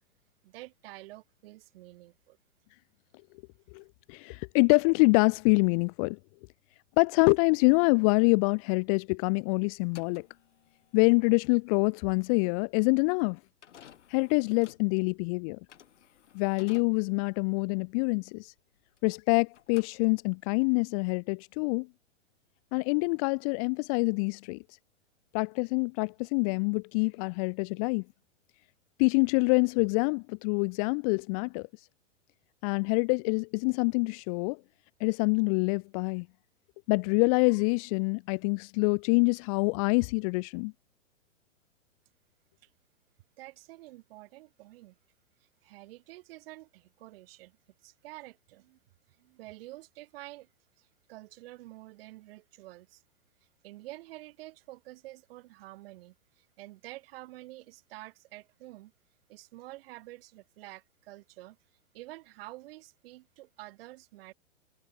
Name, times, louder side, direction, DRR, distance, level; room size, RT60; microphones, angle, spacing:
voice 1, 0.4-2.4 42.6-42.7 43.4-45.0 45.4-47.6 47.8-48.8 49.2-50.5 50.8-53.0 53.6-58.9 59.3-61.6 61.9-64.3, right 18 dB, 50° right, 3.9 m, -48 dB
voice 2, 3.7-6.2 7.0-10.3 10.9-13.4 14.1-15.6 16.3-18.5 19.0-21.9 22.7-24.6 25.3-28.0 29.0-31.7 32.6-34.6 35.0-36.3 36.9-40.7, left 35 dB, 30° left, 0.5 m, -26 dB
sound 1, 9.8-19.2 19.5-20.5, left 9 dB, 70° left, 6.5 m, -56 dB
hypercardioid pair, 115°, 37 cm